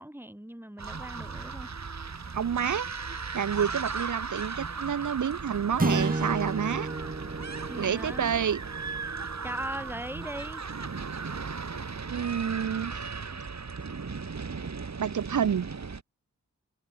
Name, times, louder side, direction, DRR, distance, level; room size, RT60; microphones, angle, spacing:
voice 1, 0.0-1.7 7.7-8.3 9.4-10.7 13.3-13.4, right 1 dB, 5° right, 4.3 m, -39 dB
sound 1, 0.8-12.7, right 3 dB, 45° right, 4.6 m, -50 dB
sound 2, 0.8-16.0, right 5 dB, 65° right, 4.3 m, -37 dB
voice 2, 2.3-2.9 3.3-6.9 7.8-8.6 12.1-12.9 15.0-15.7, right 8 dB, 85° right, 1.1 m, -28 dB
sound 3, 5.8-10.3, right 2 dB, 30° right, 2.1 m, -33 dB
cardioid pair, 40°, 29 cm